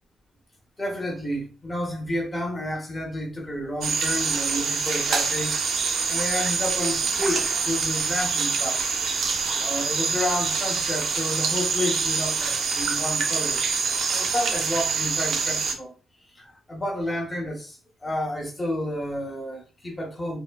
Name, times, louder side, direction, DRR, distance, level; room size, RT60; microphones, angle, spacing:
voice 1, 0.8-5.5 6.1-9.0 9.6-13.7 13.9-15.9 16.3-20.4, left 1 dB, 15° left, 0.9 m, -30 dB
sound 1, 3.8-15.7, right 5 dB, 60° right, 0.6 m, -25 dB
4.8 x 2.2 x 2.2 m
cardioid pair, 160°, 0 cm